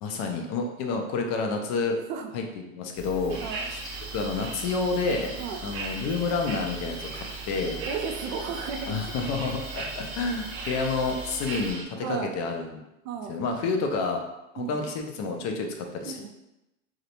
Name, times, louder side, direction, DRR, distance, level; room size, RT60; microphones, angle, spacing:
voice 1, 0.0-2.0 2.3-2.4 2.7-3.4 3.7-3.8 4.1-5.3 5.6-7.8 8.9-12.8 13.3-14.2 14.5-16.3, left 4 dB, 45° left, 3 dB, 0.4 m, -29 dB
sound 1, 3.0-11.7, right 5 dB, 10° left, 0.8 m, -42 dB
sound 2, 3.3-11.9, right 2 dB, 30° right, 0.4 m, -38 dB
voice 2, 7.9-9.0 12.0-12.3 13.0-13.4 14.6-14.9 16.0-16.3, right 6 dB, 85° right, 5 dB, 0.5 m, -34 dB
2.4 x 2.1 x 2.8 m, 0.92 s
supercardioid pair, 115°, 40 cm